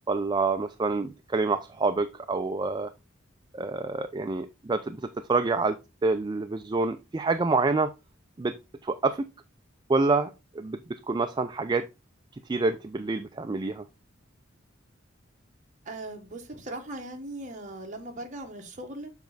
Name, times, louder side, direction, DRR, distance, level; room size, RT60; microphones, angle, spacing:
voice 1, 0.1-2.9 3.5-5.0 5.3-7.9 8.4-8.5 8.8-9.2 9.9-11.9 12.5-13.9, right 3 dB, 20° right, 0.4 m, -27 dB
voice 2, 15.8-19.1, right 1 dB, 40° right, 1.5 m, -39 dB
7.2 x 4.5 x 3.9 m
head